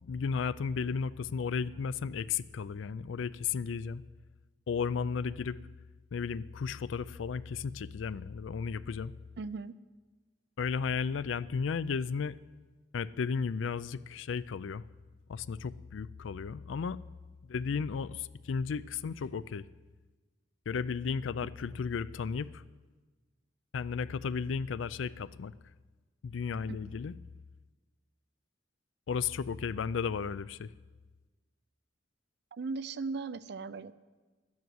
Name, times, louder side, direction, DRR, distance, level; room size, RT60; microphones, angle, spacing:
voice 1, 0.0-4.0 4.7-5.6 6.1-9.1 10.6-12.4 12.9-14.8 15.3-17.0 17.5-19.6 20.7-22.6 23.7-25.5 26.2-27.2 29.1-30.7, left 6 dB, 90° left, 18 dB, 0.4 m, -34 dB
voice 2, 9.4-9.8 26.7-26.9 32.5-33.9, right 4 dB, 60° right, 15 dB, 0.5 m, -38 dB
12.0 x 9.5 x 7.8 m, 1.3 s
head